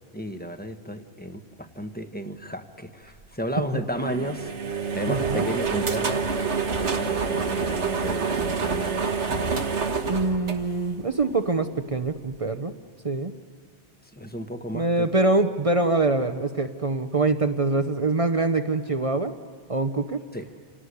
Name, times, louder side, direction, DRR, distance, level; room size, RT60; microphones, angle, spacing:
voice 1, 0.1-4.5 4.9-6.2 6.7-9.7 14.1-15.1 20.3-20.5, equal, 10° left, 7 dB, 1.2 m, -33 dB
sound 1, 3.9-11.2, right 5 dB, 80° right, 1.7 m, -27 dB
voice 2, 5.1-5.5 10.1-12.7 13.0-13.3 14.7-19.3 19.7-20.2, right 3 dB, 35° right, 8 dB, 0.8 m, -24 dB
28.5 x 18.5 x 9.7 m, 2.2 s
omnidirectional pair, 1.2 m